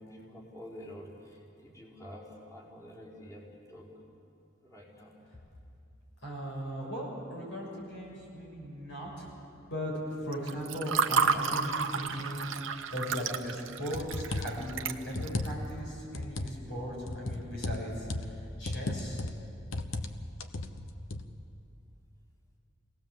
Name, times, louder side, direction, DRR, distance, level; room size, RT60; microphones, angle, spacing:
voice 1, 0.0-3.9 4.6-5.2, equal, 15° left, -6 dB, 4.5 m, -48 dB
voice 2, 6.2-9.3 9.7-9.9 10.2-19.2, equal, 65° left, -3 dB, 6.6 m, -38 dB
Water / Fill (with liquid), 10.3-15.5, right 5 dB, 75° right, 1.0 m, -31 dB
sound 1, 13.4-13.5 13.9-14.6 15.1-15.8 16.1-16.6 17.1-18.4 18.7-19.4 19.7-20.1 20.4-21.3, left 2 dB, 80° left, 1.1 m, -35 dB
26.5 x 18.5 x 7.5 m, 2.6 s
head